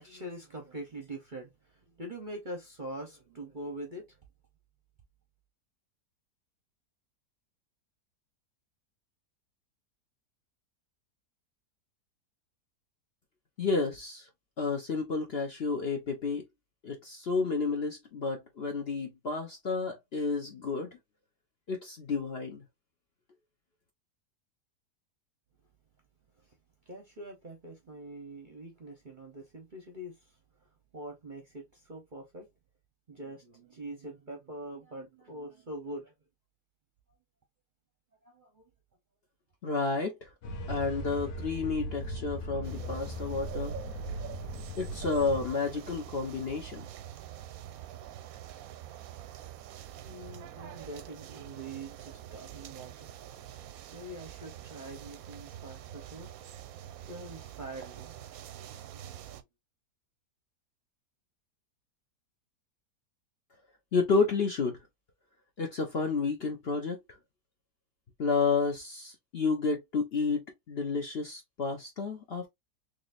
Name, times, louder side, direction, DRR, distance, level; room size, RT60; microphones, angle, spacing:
voice 1, 0.0-4.2 26.4-26.6 26.9-32.5 33.1-36.1 38.2-38.7 50.0-53.1 53.9-56.3 57.1-58.1 58.7-59.4, right 1 dB, 40° right, 0.7 m, -44 dB
voice 2, 13.6-14.3 14.6-16.4 16.8-21.0 21.7-22.6 39.6-40.3 40.7-43.8 44.8-46.8 63.9-64.8 65.6-67.2 68.2-72.5, left 4 dB, 50° left, 0.8 m, -31 dB
sound 1, 40.4-45.5, equal, 80° left, 1.5 m, -38 dB
sound 2, 42.6-59.4, right 11 dB, 70° right, 0.9 m, -46 dB
3.9 x 3.3 x 2.5 m
omnidirectional pair, 1.7 m